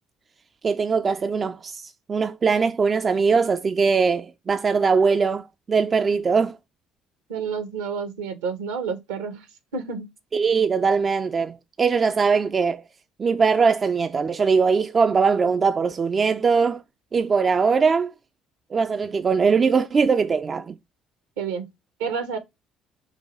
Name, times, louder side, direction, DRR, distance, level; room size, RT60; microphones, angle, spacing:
voice 1, 0.6-6.6 10.3-12.8 13.2-16.8 17.1-18.1 18.7-20.7, right 5 dB, 35° right, 0.3 m, -21 dB
voice 2, 7.3-9.4 9.7-10.1 21.4-21.7 22.0-22.4, right 6 dB, 75° right, 0.8 m, -29 dB
5.6 x 2.3 x 3.0 m
figure-of-eight pair, 50°, 0 cm